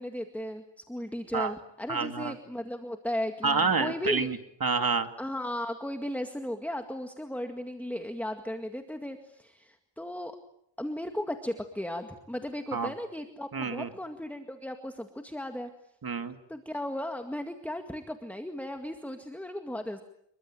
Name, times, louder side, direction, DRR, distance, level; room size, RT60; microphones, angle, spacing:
voice 1, 0.0-4.3 5.2-10.4 10.8-15.7 16.5-20.0, left 1 dB, 5° left, 6 dB, 2.0 m, -36 dB
voice 2, 1.9-2.3 3.4-5.1 12.7-12.9 13.5-13.9 16.0-16.3, right 5 dB, 50° right, 8 dB, 2.5 m, -28 dB
28.0 x 23.0 x 9.0 m, 0.73 s
wide cardioid pair, 125°, 44 cm